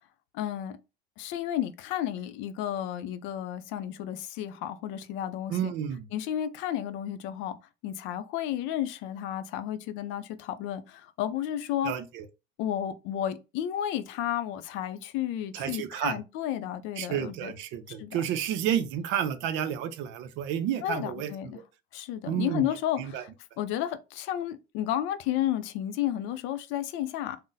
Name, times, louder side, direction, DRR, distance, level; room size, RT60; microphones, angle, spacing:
voice 1, 0.3-0.8 1.2-5.7 6.1-7.6 7.8-11.9 12.6-17.5 17.9-18.2 20.8-21.6 21.9-23.3 23.6-27.4, left 11 dB, 75° left, 0.5 m, -32 dB
voice 2, 5.5-6.1 11.8-12.3 15.5-16.2 17.0-21.5 22.3-23.2, right 9 dB, 70° right, 0.5 m, -31 dB
2.6 x 2.0 x 3.8 m
cardioid pair, 140°, 20 cm